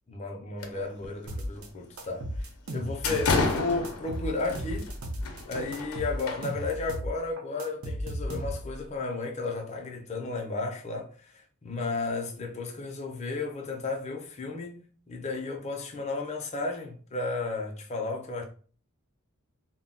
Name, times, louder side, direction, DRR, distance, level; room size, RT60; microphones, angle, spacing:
voice 1, 0.1-4.9 5.5-18.4, left 3 dB, 30° left, 0.5 m, -33 dB
sound 1, 0.6-1.1 1.4-1.6 2.2-2.3 2.7-6.9, left 3 dB, 85° left, 0.5 m, -32 dB
sound 2, 1.3-1.7 2.0-3.5 3.8-5.4 5.7-8.8, equal, 85° right, 0.6 m, -35 dB
2.1 x 2.1 x 3.7 m
head